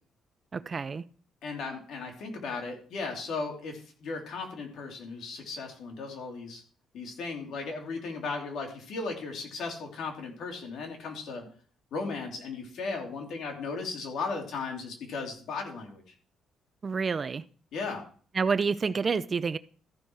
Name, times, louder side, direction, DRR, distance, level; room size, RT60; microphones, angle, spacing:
voice 1, 0.5-1.0 16.8-17.4 18.3-19.6, right 5 dB, 40° right, 0.5 m, -28 dB
voice 2, 1.4-6.6 6.9-11.4 11.9-16.1 17.7-18.0, left 4 dB, 70° left, 3.0 m, -36 dB
14.0 x 6.1 x 4.7 m
cardioid pair, 90°, 0 cm